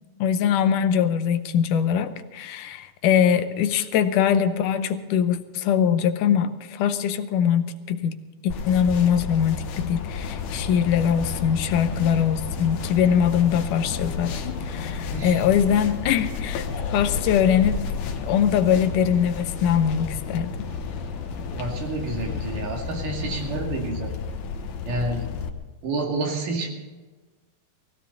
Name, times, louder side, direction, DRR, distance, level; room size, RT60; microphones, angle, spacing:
voice 1, 0.2-8.2 8.4-16.7 16.9-17.8 18.2-20.7, left 8 dB, 85° left, 10 dB, 2.4 m, -22 dB
sound 1, 8.5-25.5, left 5 dB, 70° left, 2.2 m, -32 dB
sound 2, 10.2-23.6, left 5 dB, 35° left, 2.5 m, -40 dB
voice 2, 15.1-15.4 21.6-24.1 24.9-25.2 25.8-26.7, right 2 dB, 85° right, 0 dB, 4.0 m, -29 dB
19.0 x 15.5 x 4.1 m, 1.3 s
omnidirectional pair, 3.6 m